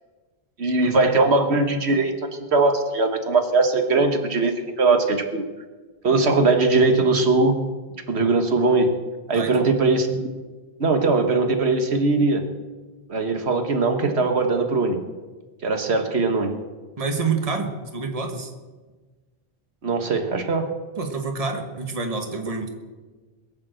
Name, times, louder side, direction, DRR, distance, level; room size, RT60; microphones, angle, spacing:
voice 1, 0.6-5.4 6.0-7.6 8.1-8.9 9.3-10.3 10.8-12.4 13.1-15.0 15.6-16.6 19.8-20.7, right 3 dB, 85° right, 5 dB, 1.7 m, -20 dB
voice 2, 17.0-18.5 21.0-22.8, right 4 dB, 35° right, 3 dB, 1.6 m, -27 dB
22.0 x 7.5 x 7.7 m, 1.3 s
omnidirectional pair, 1.1 m